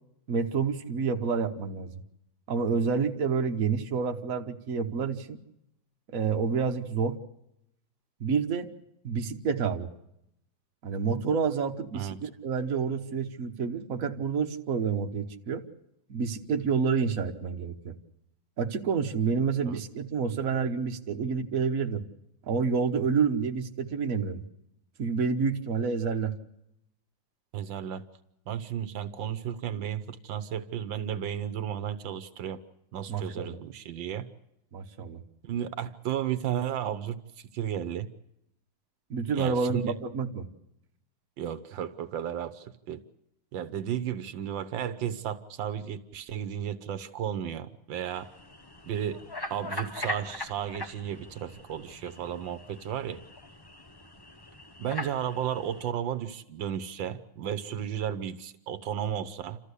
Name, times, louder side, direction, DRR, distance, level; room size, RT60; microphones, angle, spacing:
voice 1, 0.3-2.0 2.5-5.4 6.1-7.2 8.2-8.7 9.0-9.9 10.8-15.6 16.1-18.0 18.6-22.0 22.5-24.4 25.0-26.3 33.1-33.6 34.7-35.2 39.1-40.5, right 5 dB, 50° right, 5 dB, 1.5 m, -28 dB
voice 2, 27.5-28.0 28.5-32.6 32.9-34.3 35.4-37.2 37.5-38.1 39.3-39.9 41.4-43.0 43.5-48.3 48.9-49.2 49.5-53.2 54.8-59.6, right 9 dB, 90° right, 13 dB, 1.7 m, -33 dB
sound 1, 48.1-55.9, left 1 dB, 15° left, 1.0 m, -41 dB
28.5 x 14.0 x 8.3 m, 0.82 s
omnidirectional pair, 2.0 m